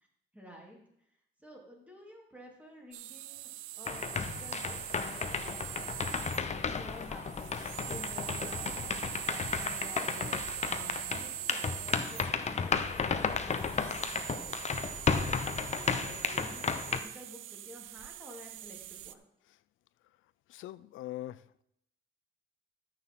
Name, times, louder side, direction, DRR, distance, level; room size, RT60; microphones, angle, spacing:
voice 1, 0.3-0.8 1.4-7.5 7.9-14.6 15.2-19.2, equal, 5° right, -1 dB, 3.3 m, -51 dB
sound 1, 2.9-19.1, right 14 dB, 90° right, 0.5 m, -43 dB
sound 2, 3.9-17.0, left 5 dB, 35° left, 0.9 m, -33 dB
voice 2, 20.5-21.6, left 14 dB, 80° left, 18 dB, 0.5 m, -42 dB
13.5 x 6.6 x 3.9 m, 0.75 s
cardioid pair, 90°, 20 cm